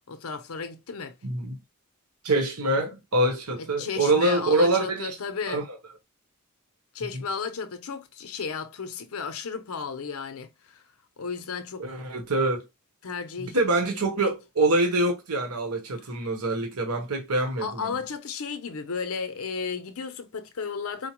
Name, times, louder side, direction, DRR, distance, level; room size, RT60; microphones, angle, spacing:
voice 1, 0.1-1.1 3.6-5.6 6.9-10.8 11.2-11.9 13.0-13.6 14.1-14.3 17.4-21.1, left 5 dB, 70° left, 0.6 m, -34 dB
voice 2, 1.2-1.6 2.2-5.2 5.5-5.6 11.8-12.6 13.4-18.0, right 2 dB, 90° right, 1.1 m, -25 dB
4.4 x 2.1 x 2.9 m
head